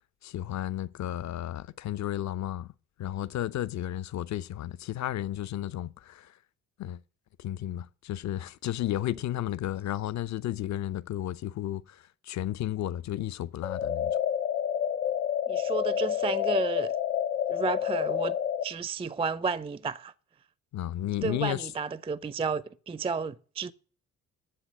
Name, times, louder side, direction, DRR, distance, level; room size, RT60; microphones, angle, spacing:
voice 1, 0.2-2.7 3.0-6.3 6.8-7.0 7.4-14.2 20.7-21.7, left 12 dB, 40° left, 0.7 m, -33 dB
sound 1, 13.6-18.6, left 9 dB, 80° left, 0.9 m, -29 dB
voice 2, 15.5-17.0 17.5-18.4 18.6-20.1 21.2-23.7, right 5 dB, 15° right, 0.5 m, -32 dB
9.9 x 7.7 x 7.8 m
figure-of-eight pair, 45°, 43 cm